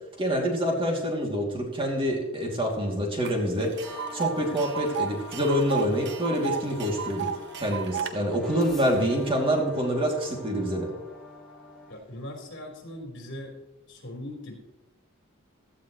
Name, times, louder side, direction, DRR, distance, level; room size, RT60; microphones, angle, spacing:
voice 1, 0.2-3.8 4.1-10.9, equal, 25° right, 0 dB, 2.7 m, -26 dB
Tick, 3.2-3.3 3.6-8.1, right 8 dB, 55° right, 0.9 m, -33 dB
sound 1, 3.8-11.9, left 2 dB, ahead, 2.6 m, -44 dB
voice 2, 11.9-13.5 13.9-14.6, left 1 dB, 60° left, 0 dB, 4.3 m, -40 dB
16.5 x 13.5 x 3.2 m, 0.99 s
head